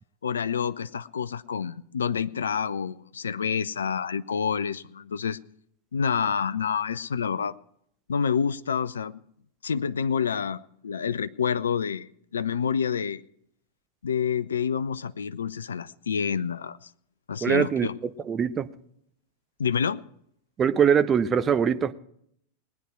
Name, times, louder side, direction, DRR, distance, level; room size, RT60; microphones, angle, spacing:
voice 1, 0.2-5.4 5.9-7.5 8.1-9.2 9.6-13.2 14.0-16.9 17.3-17.9 19.6-20.0, left 7 dB, 70° left, 0.4 m, -28 dB
voice 2, 17.4-17.9 18.3-18.7 20.6-21.9, right 7 dB, 25° right, 0.7 m, -22 dB
20.0 x 9.4 x 4.6 m
figure-of-eight pair, 90°, 0 cm